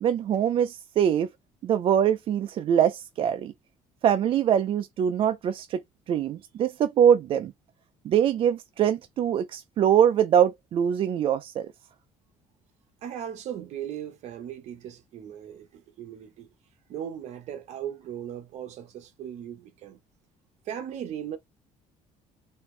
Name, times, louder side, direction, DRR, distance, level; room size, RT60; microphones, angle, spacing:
voice 1, 0.0-1.3 1.6-3.5 4.0-5.8 6.1-7.5 8.0-11.7, right 9 dB, 45° right, 0.4 m, -23 dB
voice 2, 13.0-16.5 16.9-20.0 20.6-21.4, right 9 dB, 60° right, 1.1 m, -38 dB
4.3 x 2.6 x 3.2 m
cardioid pair, 145°, 13 cm